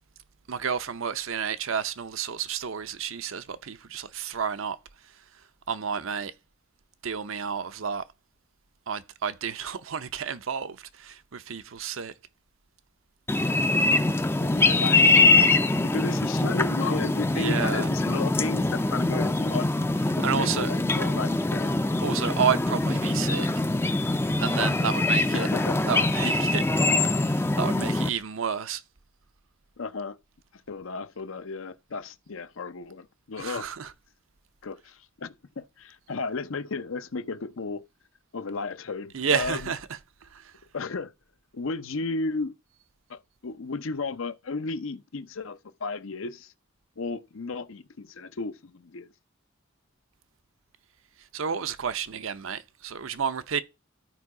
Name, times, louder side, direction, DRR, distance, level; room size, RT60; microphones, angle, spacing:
voice 1, 0.5-4.8 5.7-6.3 7.0-8.0 8.9-12.1 17.3-17.9 20.2-20.7 22.0-23.5 24.4-25.5 25.8-26.6 27.5-28.8 33.4-33.9 39.1-39.8 40.3-40.4 51.3-53.6, right 7 dB, 70° right, 0.7 m, -30 dB
sound 1, 13.3-28.1, left 2 dB, 10° left, 0.4 m, -23 dB
voice 2, 14.4-19.7 20.2-21.7 25.3-25.8 29.8-30.2 30.7-33.7 34.6-37.8 38.3-39.7 40.7-41.1 41.5-42.6 43.1-46.5 47.0-49.1, left 4 dB, 70° left, 0.7 m, -34 dB
12.5 x 4.7 x 4.8 m
head